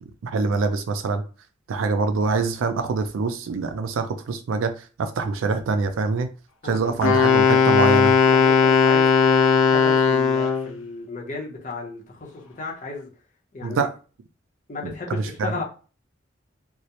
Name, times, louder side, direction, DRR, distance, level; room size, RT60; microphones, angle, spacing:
voice 1, 0.0-1.2 1.7-6.3 6.6-8.1 13.6-13.9 14.8-15.5, right 4 dB, 80° right, 0.4 m, -25 dB
voice 2, 6.6-6.9 8.3-13.1 13.5-13.9 14.7-15.6, left 3 dB, 40° left, 0.6 m, -34 dB
Wind instrument woodwind instrument, 7.0-10.7, left 6 dB, 85° left, 0.4 m, -17 dB
2.2 x 2.0 x 2.8 m
head